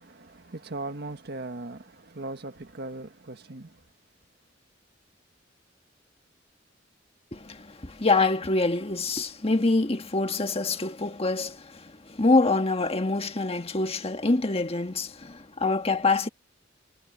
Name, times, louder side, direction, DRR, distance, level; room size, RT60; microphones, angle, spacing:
voice 1, 0.0-3.8, right 2 dB, 60° right, 1.7 m, -39 dB
voice 2, 7.3-16.3, left 3 dB, 30° left, 1.6 m, -25 dB
head